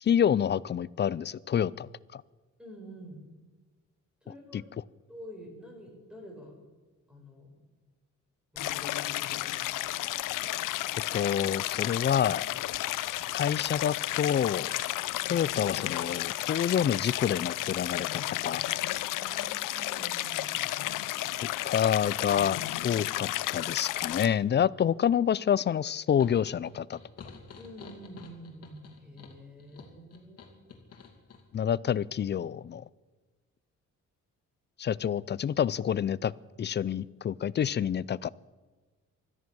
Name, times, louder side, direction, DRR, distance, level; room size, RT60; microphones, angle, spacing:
voice 1, 0.0-2.2 4.5-4.6 11.1-12.4 13.3-14.7 15.3-18.6 21.6-27.0 31.5-32.8 34.8-36.3 36.6-38.3, left 9 dB, 35° left, 22 dB, 0.4 m, -28 dB
voice 2, 2.6-3.2 4.2-4.7 5.1-6.7 7.1-7.6 8.5-10.0 19.2-20.5 27.6-30.6, equal, 5° right, 1 dB, 5.1 m, -48 dB
Stream, 8.6-24.3, left 15 dB, 85° left, 0.6 m, -32 dB
sound 1, 26.2-31.4, left 5 dB, 50° left, 2.5 m, -50 dB
16.5 x 13.0 x 6.3 m, 1.3 s
cardioid pair, 105°, 31 cm